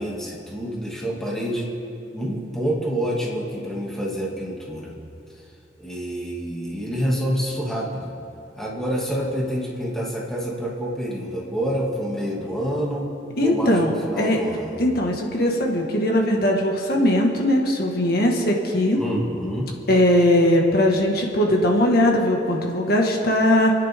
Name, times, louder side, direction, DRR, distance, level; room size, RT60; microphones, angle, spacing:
voice 1, 0.0-1.7 2.1-5.0 5.8-8.1 8.6-13.1 13.4-14.8 18.9-19.7, equal, 5° left, -4 dB, 2.4 m, -27 dB
voice 2, 13.4-13.9 14.2-14.4 14.8-19.0 19.9-23.7, left 1 dB, 60° left, 0 dB, 1.8 m, -19 dB
28.5 x 10.0 x 3.7 m, 2.7 s
head